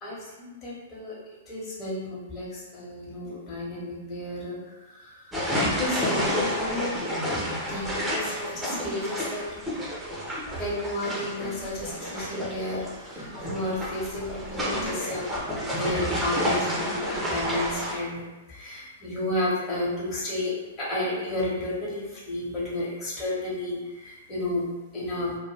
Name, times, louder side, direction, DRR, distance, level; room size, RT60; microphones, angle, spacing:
voice 1, 0.0-1.1 1.5-4.6 4.9-5.1 5.6-7.0 7.6-9.5 10.5-18.2 18.5-25.4, left 1 dB, 25° left, -7 dB, 0.9 m, -32 dB
sound 1, 5.3-18.0, equal, 10° right, 0.5 m, -30 dB
2.2 x 2.1 x 3.2 m, 1.1 s
figure-of-eight pair, 110°, 0 cm